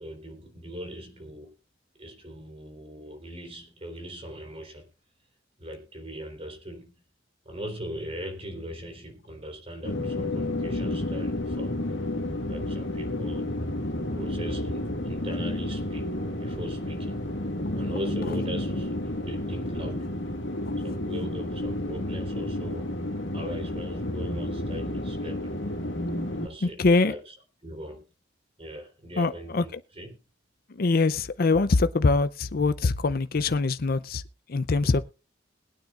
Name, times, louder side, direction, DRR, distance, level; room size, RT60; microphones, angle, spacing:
voice 1, 0.0-1.5 2.0-4.9 5.6-6.9 7.5-11.7 12.5-13.8 14.1-17.2 17.8-20.1 20.8-23.1 23.3-25.6 26.4-27.3 27.6-28.0 28.6-30.2 34.8-35.0, equal, 30° right, 3.5 m, -40 dB
sound 1, 9.8-26.5, left 1 dB, 80° left, 1.9 m, -31 dB
voice 2, 26.6-27.1 29.2-29.8 30.7-34.2 34.5-35.0, left 3 dB, 55° left, 0.6 m, -23 dB
21.5 x 9.0 x 2.5 m
head